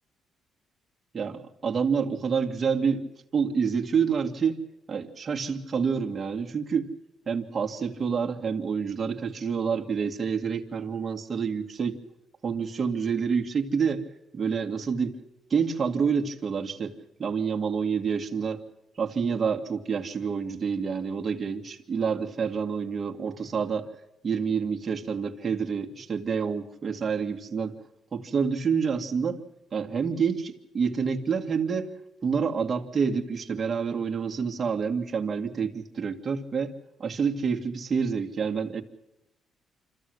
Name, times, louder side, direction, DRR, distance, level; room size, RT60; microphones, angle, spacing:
voice 1, 1.1-4.6 4.9-6.9 7.3-12.0 12.4-14.0 14.3-15.2 15.5-16.9 17.2-18.6 19.0-23.9 24.2-27.8 28.1-29.4 29.7-31.9 32.2-36.7 37.0-38.8, right 6 dB, 40° right, 1 dB, 2.2 m, -28 dB
26.0 x 15.0 x 7.9 m, 0.91 s
cardioid pair, 90°, 0 cm